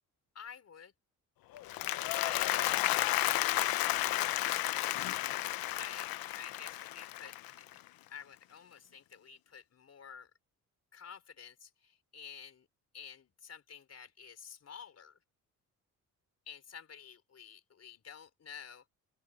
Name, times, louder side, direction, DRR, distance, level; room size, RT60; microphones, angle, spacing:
voice 1, 0.3-0.9 2.1-4.7 5.8-7.7 8.1-10.3 10.9-12.7 12.9-15.2 16.5-18.9, left 7 dB, 45° left, 4.0 m, -50 dB
Applause, 1.5-7.9, left 15 dB, 85° left, 0.9 m, -32 dB
open air
cardioid pair, 100°, 34 cm